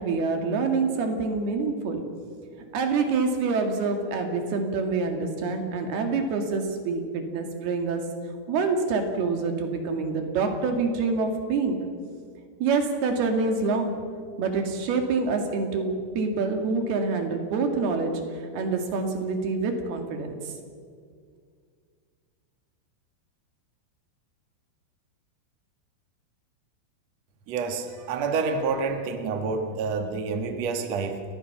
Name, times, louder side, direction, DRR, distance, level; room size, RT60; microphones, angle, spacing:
voice 1, 0.0-2.0 2.7-8.0 8.5-11.8 12.6-13.9 14.4-20.5, right 4 dB, 55° right, 4 dB, 3.7 m, -26 dB
voice 2, 27.5-31.2, right 4 dB, 90° right, 6 dB, 1.5 m, -28 dB
29.0 x 20.5 x 6.0 m, 2.1 s
omnidirectional pair, 5.9 m